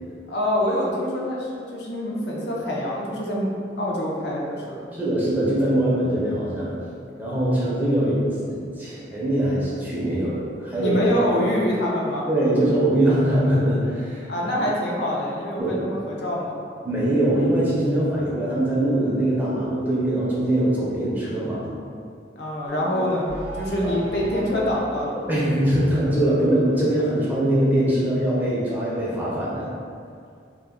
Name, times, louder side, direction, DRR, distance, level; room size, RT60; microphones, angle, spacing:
voice 1, 0.3-3.5 3.8-4.9 10.8-12.3 14.3-16.6 22.4-25.3, equal, 70° left, -3 dB, 0.5 m, -25 dB
voice 2, 4.9-6.7 7.2-8.2 8.4-11.0 11.4-11.5 12.3-14.3 15.6-15.8 16.8-21.6 23.0-23.1 23.8-23.9 25.3-29.7, right 1 dB, 10° right, -8 dB, 0.5 m, -22 dB
sound 1, 22.7-24.8, right 2 dB, 85° right, 0.6 m, -37 dB
2.2 x 2.1 x 3.4 m, 2.3 s
head